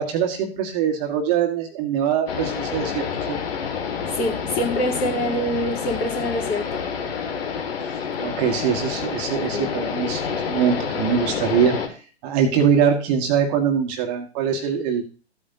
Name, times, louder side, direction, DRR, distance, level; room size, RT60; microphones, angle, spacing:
voice 1, 0.0-3.4 8.2-11.8 12.2-15.0, right 7 dB, 35° right, 3 dB, 1.7 m, -22 dB
sound 1, 2.3-11.9, left 6 dB, 60° left, 2.0 m, -28 dB
voice 2, 4.2-6.8 9.5-9.7, equal, 25° left, 0 dB, 3.6 m, -25 dB
14.5 x 8.7 x 2.8 m, 0.37 s
figure-of-eight pair, 120°, 33 cm